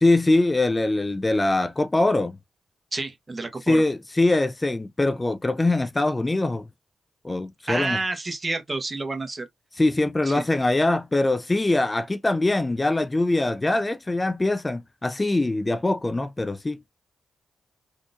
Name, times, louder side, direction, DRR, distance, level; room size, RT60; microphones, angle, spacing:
voice 1, 0.0-2.3 3.7-6.6 7.2-8.0 9.8-16.8, left 2 dB, 25° left, 0.3 m, -23 dB
voice 2, 2.9-3.8 7.7-9.5 10.2-10.4, right 3 dB, 30° right, 1.0 m, -29 dB
3.7 x 2.5 x 2.4 m
supercardioid pair, 55°, 0 cm